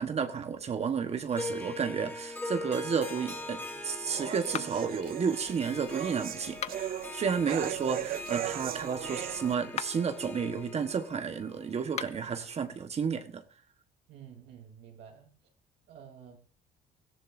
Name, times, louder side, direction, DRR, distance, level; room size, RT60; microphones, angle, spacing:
voice 1, 0.0-3.6 3.8-13.4, right 6 dB, 40° right, 8 dB, 1.3 m, -32 dB
Harp, 1.3-12.6, left 2 dB, 10° left, 3.1 m, -42 dB
sound 1, 3.1-9.6, right 11 dB, 60° right, 0.8 m, -38 dB
sound 2, 4.5-5.0 6.5-7.1 9.6-10.1 11.8-12.3, left 9 dB, 40° left, 0.6 m, -39 dB
voice 2, 14.1-15.3 15.9-16.4, right 8 dB, 80° right, 2 dB, 3.4 m, -50 dB
17.5 x 14.5 x 2.7 m, 0.35 s
cardioid pair, 110°, 17 cm